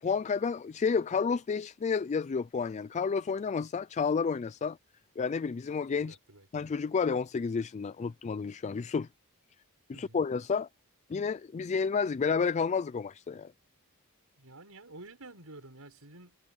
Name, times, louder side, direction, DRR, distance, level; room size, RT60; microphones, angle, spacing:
voice 1, 0.0-4.8 5.2-6.2 6.5-9.1 9.9-10.7 11.1-13.5, left 5 dB, 30° left, 0.3 m, -30 dB
voice 2, 6.0-6.5 9.9-10.2 14.4-16.4, right 2 dB, 75° right, 7.0 m, -50 dB
head